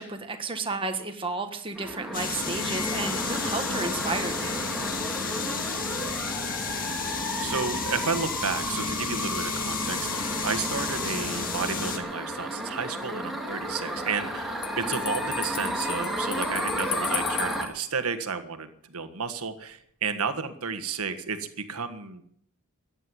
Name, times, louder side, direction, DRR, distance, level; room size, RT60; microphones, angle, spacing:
voice 1, 0.0-4.6, right 3 dB, 25° right, 5 dB, 1.5 m, -32 dB
sound 1, 1.8-17.7, equal, ahead, 2.2 m, -33 dB
sound 2, 2.1-12.0, left 4 dB, 40° left, 1.9 m, -32 dB
voice 2, 7.4-22.2, right 5 dB, 80° right, 9 dB, 1.6 m, -32 dB
Bell, 14.6-17.7, left 12 dB, 85° left, 1.3 m, -35 dB
14.5 x 9.9 x 9.6 m, 0.68 s
head